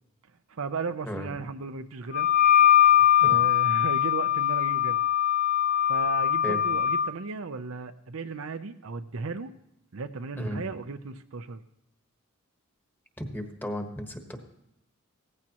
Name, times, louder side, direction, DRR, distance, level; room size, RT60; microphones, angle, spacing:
voice 1, 0.5-2.3 3.2-5.0 5.8-9.5 9.9-11.6, right 4 dB, 75° right, 9 dB, 0.6 m, -35 dB
Wind instrument woodwind instrument, 2.1-7.1, left 10 dB, 40° left, 0.7 m, -21 dB
voice 2, 6.4-6.8 10.4-10.6 13.2-14.4, equal, 10° left, 4 dB, 1.3 m, -34 dB
17.0 x 15.0 x 3.0 m, 0.83 s
head